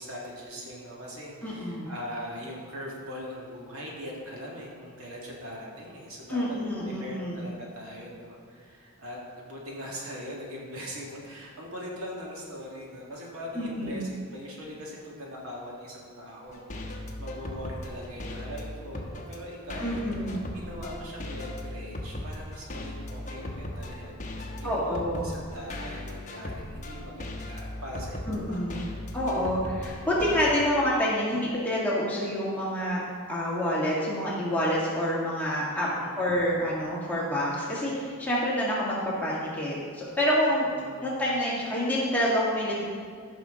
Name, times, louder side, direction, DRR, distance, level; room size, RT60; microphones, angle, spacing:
voice 1, 0.0-6.4 6.8-16.9 17.2-20.0 20.5-29.0 29.9-30.3 35.8-36.2 40.8-41.1, equal, 75° right, -3 dB, 2.1 m, -41 dB
voice 2, 1.4-1.9 6.3-7.4 13.5-14.1 19.8-20.4 24.6-25.3 28.3-28.9 29.1-33.0 33.3-35.9 36.2-40.7 41.0-42.8, equal, 5° left, -7 dB, 1.9 m, -27 dB
sound 1, 16.5-30.6, left 1 dB, 35° left, 1.0 m, -38 dB
14.5 x 6.1 x 3.8 m, 2.1 s
head